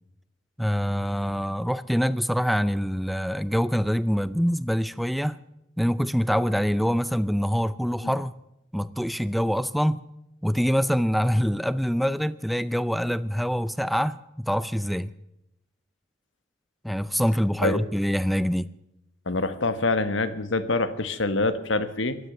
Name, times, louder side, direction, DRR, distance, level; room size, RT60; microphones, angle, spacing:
voice 1, 0.6-5.4 5.8-8.3 8.7-10.0 10.4-15.1 16.8-18.7, equal, ahead, 0.5 m, -25 dB
voice 2, 19.3-22.2, left 3 dB, 85° left, 1.4 m, -25 dB
16.5 x 12.5 x 6.8 m
head